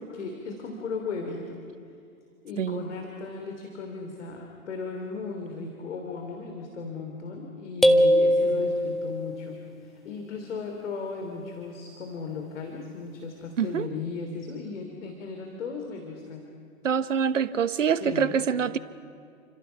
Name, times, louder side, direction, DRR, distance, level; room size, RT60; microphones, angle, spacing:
voice 1, 0.0-1.6 2.4-16.4 18.0-18.5, left 4 dB, 60° left, 2 dB, 3.4 m, -36 dB
voice 2, 2.6-2.9 13.6-13.9 16.8-18.8, right 7 dB, 65° right, 14 dB, 1.2 m, -25 dB
sound 1, 7.8-9.3, equal, ahead, 0.5 m, -21 dB
29.5 x 26.0 x 5.7 m, 2.5 s
figure-of-eight pair, 105°, 40 cm